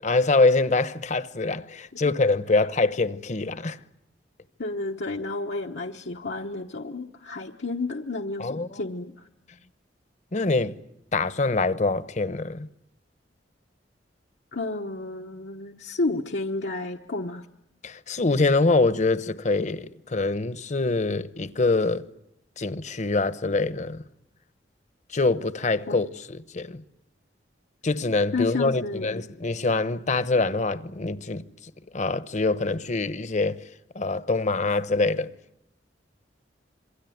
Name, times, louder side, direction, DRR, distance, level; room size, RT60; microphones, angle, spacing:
voice 1, 0.0-3.8 8.4-8.8 10.3-10.8 11.1-12.7 17.8-22.1 22.6-24.0 25.1-26.8 27.8-31.4 31.9-33.6 33.9-35.3, left 3 dB, 40° left, 0.9 m, -24 dB
voice 2, 4.6-9.3 14.5-17.5 25.9-26.1 28.3-29.1, left 3 dB, 80° left, 1.2 m, -31 dB
27.0 x 23.0 x 9.4 m
head